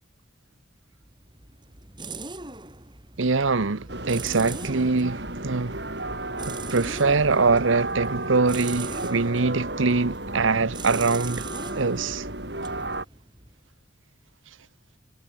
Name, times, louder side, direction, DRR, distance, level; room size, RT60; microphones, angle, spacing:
sound 1, 1.0-13.7, right 3 dB, 25° right, 5.2 m, -41 dB
voice 1, 3.2-5.8 6.5-11.5 11.8-12.3, right 4 dB, 80° right, 1.0 m, -23 dB
sound 2, 3.9-13.0, right 2 dB, 55° right, 7.6 m, -33 dB
head